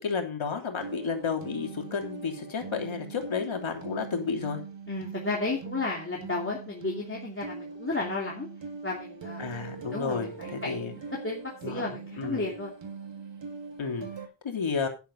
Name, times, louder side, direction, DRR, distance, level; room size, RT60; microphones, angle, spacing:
voice 1, 0.0-4.6 9.4-10.9 11.6-12.5 13.8-14.1 14.4-14.9, left 5 dB, 80° left, 3 dB, 3.2 m, -32 dB
sound 1, 0.8-14.3, right 5 dB, 65° right, 2.1 m, -42 dB
voice 2, 4.9-8.5 8.8-9.5 9.9-10.8 11.2-12.7, left 3 dB, 25° left, -2 dB, 2.8 m, -33 dB
11.0 x 10.5 x 4.0 m, 0.31 s
wide cardioid pair, 120°, 47 cm